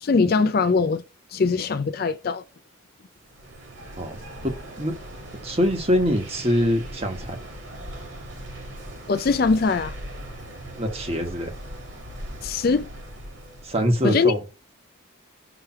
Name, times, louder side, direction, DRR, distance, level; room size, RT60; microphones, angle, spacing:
voice 1, 0.0-1.0 1.3-2.4 9.1-10.0 12.4-12.9 14.0-14.3, left 4 dB, 45° left, 0.4 m, -21 dB
sound 1, 3.2-14.1, right 1 dB, 65° right, 2.4 m, -39 dB
voice 2, 4.4-4.9 5.4-7.4 10.8-11.5 13.6-14.4, equal, 30° right, 1.3 m, -24 dB
5.9 x 3.3 x 5.7 m
head